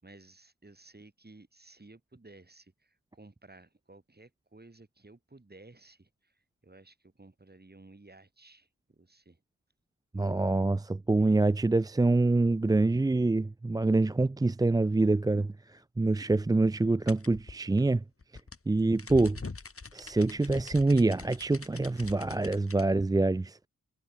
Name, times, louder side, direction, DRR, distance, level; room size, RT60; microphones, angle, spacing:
voice 1, 0.0-2.7 3.1-6.1 6.6-9.4, right 2 dB, 30° right, 7.7 m, -55 dB
voice 2, 10.1-18.0 18.7-19.4 19.9-23.6, right 2 dB, 10° right, 0.4 m, -26 dB
sound 1, 17.1-22.9, left 4 dB, 40° left, 3.8 m, -43 dB
cardioid pair, 60°, 35 cm